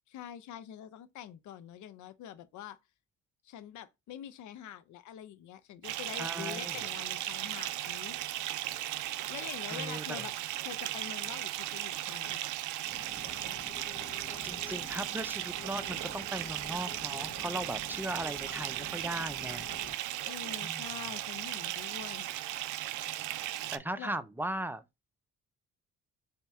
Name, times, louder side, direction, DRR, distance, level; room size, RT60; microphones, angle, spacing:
voice 1, 0.1-2.8 3.4-8.2 9.3-10.3 10.6-12.4 20.2-22.3 24.0-24.1, left 10 dB, 75° left, 0.6 m, -45 dB
Bathtub (filling or washing) / Fill (with liquid), 5.8-23.8, right 14 dB, 80° right, 0.5 m, -37 dB
voice 2, 6.2-6.8 9.7-10.3 14.4-19.7 20.6-20.9 23.7-24.8, right 1 dB, 5° right, 0.5 m, -38 dB
sound 1, 12.8-19.9, left 5 dB, 45° left, 1.3 m, -49 dB
4.1 x 2.9 x 3.5 m
cardioid pair, 90°, 30 cm